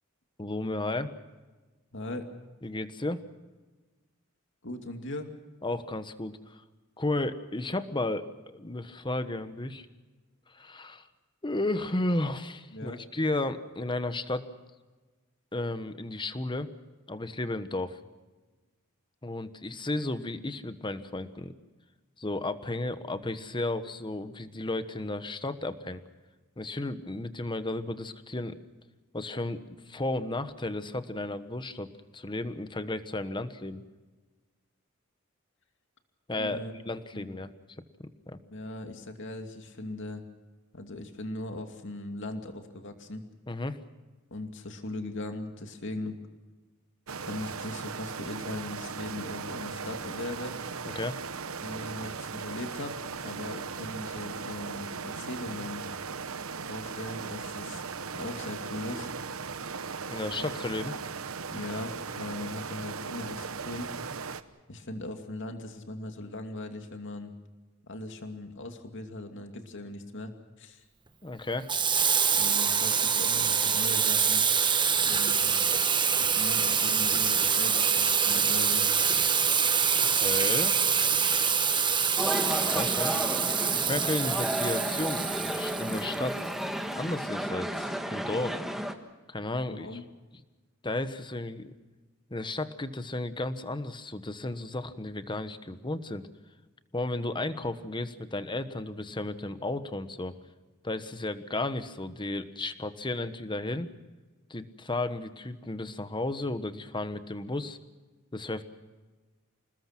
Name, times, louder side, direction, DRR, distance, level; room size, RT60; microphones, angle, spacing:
voice 1, 0.4-1.1 2.6-3.2 5.6-6.6 7.0-8.3 8.5-9.9 10.5-11.1 11.4-14.4 15.5-16.7 17.1-18.0 19.2-21.5 22.2-26.0 26.6-28.6 29.1-33.8 36.3-37.5 38.0-38.4 43.5-43.8 50.8-51.2 60.1-61.0 71.2-71.7 80.1-80.7 82.7-83.1 83.7-86.5 86.9-88.6 89.3-89.9 90.8-91.7 92.3-96.3 96.9-100.3 100.8-103.9 104.5-107.8 108.3-108.6, left 2 dB, 20° left, 11 dB, 1.2 m, -33 dB
voice 2, 1.9-2.3 4.6-5.3 12.7-13.0 36.3-36.8 37.1-37.3 38.5-40.2 40.7-43.2 44.3-46.2 47.2-50.6 51.6-55.8 56.7-57.9 58.1-59.1 61.5-64.0 64.7-67.3 67.8-70.3 70.6-70.8 72.3-74.4 75.0-75.6 76.2-78.9 83.1-83.3 87.8-87.9 89.7-90.0, left 2 dB, 60° left, 5 dB, 2.6 m, -39 dB
sound 1, 47.1-64.4, right 5 dB, 75° right, 1.1 m, -38 dB
Water tap faucet / Sink (filling or washing), 71.7-86.5, right 6 dB, 20° right, 1.2 m, -25 dB
sound 2, 82.2-88.9, equal, ahead, 1.5 m, -32 dB
28.0 x 20.0 x 6.0 m, 1.2 s
head